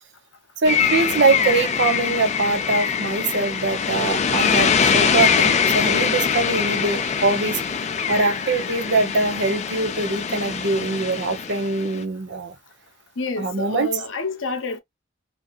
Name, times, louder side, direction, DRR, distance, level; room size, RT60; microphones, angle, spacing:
voice 1, 0.6-7.6 8.1-12.6 13.4-14.0, right 3 dB, 60° right, 0.6 m, -23 dB
sound 1, 0.7-12.0, left 6 dB, 35° left, 0.4 m, -23 dB
voice 2, 13.2-14.8, left 3 dB, 75° left, 0.7 m, -28 dB
2.7 x 2.4 x 2.3 m
head